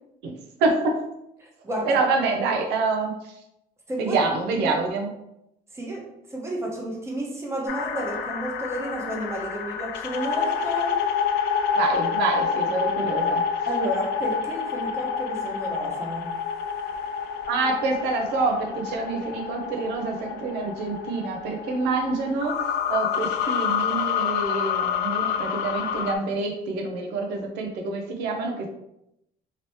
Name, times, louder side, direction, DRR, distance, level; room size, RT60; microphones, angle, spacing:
voice 1, 0.6-0.9 1.8-3.4 4.0-5.1 11.7-13.4 17.5-22.5 22.9-28.7, right 3 dB, 90° right, 2 dB, 0.6 m, -26 dB
voice 2, 1.4-2.0 3.9-4.2 4.6-4.7 5.7-11.0 13.7-16.4, right 1 dB, 15° right, -2 dB, 0.9 m, -31 dB
sound 1, 7.7-26.1, left 7 dB, 75° left, 0.4 m, -28 dB
2.9 x 2.8 x 3.0 m, 0.83 s
cardioid pair, 110°, 17 cm